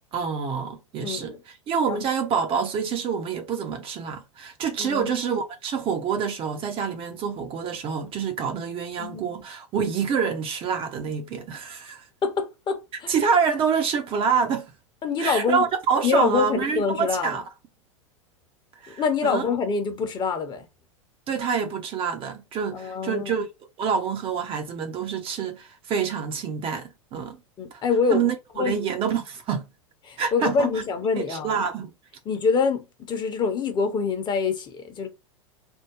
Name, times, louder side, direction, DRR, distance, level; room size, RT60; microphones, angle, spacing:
voice 1, 0.1-1.3 1.7-12.0 13.1-14.7 15.2-17.4 18.8-19.5 21.3-23.5 23.8-27.4 27.7-27.8 28.1-29.6 30.2-30.7 31.2-31.9, right 6 dB, 35° right, 0.7 m, -27 dB
voice 2, 1.0-1.4 1.9-2.0 4.8-5.2 9.0-9.3 12.2-13.1 15.0-15.6 16.0-17.4 19.0-20.7 22.7-23.3 27.6-28.3 28.6-28.8 30.1-31.6 32.3-35.1, left 5 dB, 25° left, 0.9 m, -25 dB
3.5 x 2.2 x 3.0 m
figure-of-eight pair, 90°, 17 cm